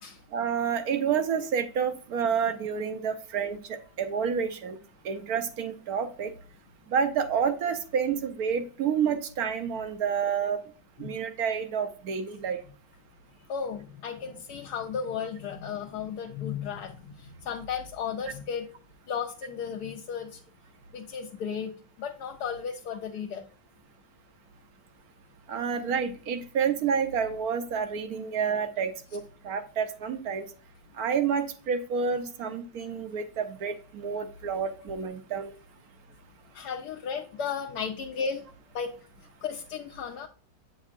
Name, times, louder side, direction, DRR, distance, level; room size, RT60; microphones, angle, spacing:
voice 1, 0.3-4.8 5.0-6.3 6.9-10.6 11.0-12.6 25.5-30.4 31.0-35.5, right 7 dB, 65° right, 8 dB, 1.0 m, -29 dB
voice 2, 13.5-18.7 19.1-20.4 20.9-21.7 22.0-23.4 36.5-38.4 38.7-40.3, left 6 dB, 70° left, 2 dB, 1.1 m, -34 dB
8.4 x 6.3 x 2.5 m, 0.40 s
omnidirectional pair, 2.0 m